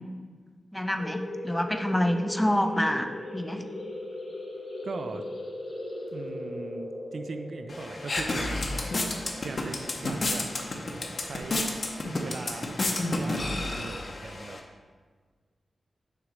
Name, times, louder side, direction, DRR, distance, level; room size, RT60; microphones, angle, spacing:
voice 1, 0.7-3.6, equal, 5° left, 6 dB, 0.4 m, -27 dB
sound 1, 1.0-10.3, left 1 dB, 80° left, 0.9 m, -39 dB
voice 2, 4.8-5.2 6.1-8.8 9.1-10.5 11.2-11.7 12.2-12.7 13.2-14.6, right 3 dB, 65° right, 8 dB, 0.3 m, -40 dB
sound 2, 7.7-14.6, left 2 dB, 45° left, 0.7 m, -31 dB
6.4 x 3.0 x 4.9 m, 1.5 s
wide cardioid pair, 130°, 0 cm